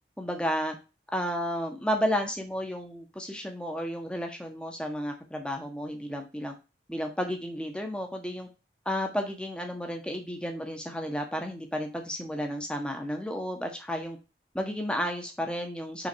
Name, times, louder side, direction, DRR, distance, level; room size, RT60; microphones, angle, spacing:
voice 1, 0.2-0.8 1.1-6.5 6.9-8.5 8.8-14.2 14.5-16.1, equal, 5° left, 4 dB, 1.2 m, -32 dB
6.1 x 3.7 x 4.7 m, 0.29 s
head